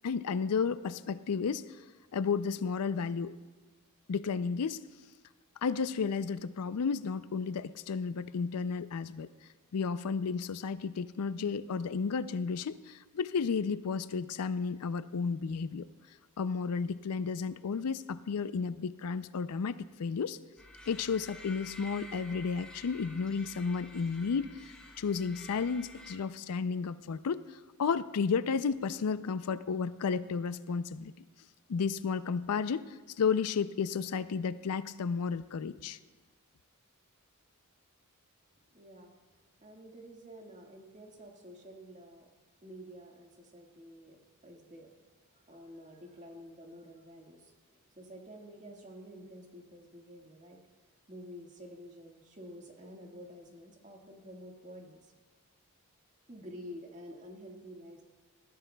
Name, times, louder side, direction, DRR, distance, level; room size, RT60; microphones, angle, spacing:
voice 1, 0.0-1.7 2.1-3.4 4.1-4.8 5.6-9.3 9.7-15.9 16.4-20.4 20.9-27.4 27.8-31.1 31.7-36.0, left 5 dB, 90° left, 15 dB, 0.4 m, -32 dB
sound 1, 20.6-26.2, left 2 dB, 5° left, 2.0 m, -50 dB
voice 2, 38.7-39.2 39.6-42.3 42.6-44.9 45.3-50.6 51.1-55.1 56.3-58.0, equal, 35° right, 0 dB, 1.7 m, -50 dB
20.0 x 15.0 x 2.3 m, 1.4 s
head